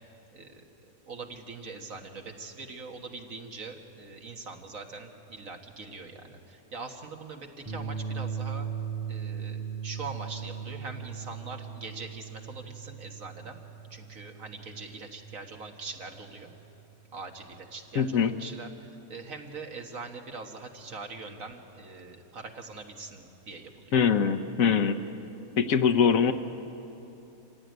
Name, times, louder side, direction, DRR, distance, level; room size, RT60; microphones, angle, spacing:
voice 1, 0.3-8.7 9.1-13.6 13.9-16.5 17.1-24.0, right 4 dB, 65° right, 3 dB, 2.1 m, -42 dB
sound 1, 7.7-16.1, right 7 dB, 10° right, 6.0 m, -38 dB
voice 2, 17.9-18.3 23.9-25.0 25.6-26.3, left 6 dB, 70° left, 7 dB, 1.4 m, -23 dB
26.5 x 15.5 x 9.4 m, 3.0 s
omnidirectional pair, 1.5 m